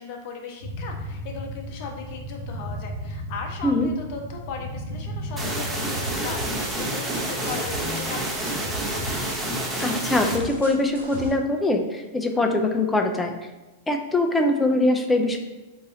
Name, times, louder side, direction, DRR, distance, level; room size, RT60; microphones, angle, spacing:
voice 1, 0.0-8.6, left 5 dB, 50° left, 2 dB, 0.7 m, -37 dB
sound 1, 0.6-6.2, equal, 60° right, 1.1 m, -35 dB
sound 2, 5.4-10.4, right 1 dB, 15° right, 1.0 m, -29 dB
sound 3, 6.0-11.3, equal, 80° right, 1.3 m, -36 dB
voice 2, 9.8-13.3 13.9-15.4, left 2 dB, 10° left, 4 dB, 0.5 m, -22 dB
3.8 x 2.7 x 3.8 m, 1.1 s
hypercardioid pair, 105°, 0 cm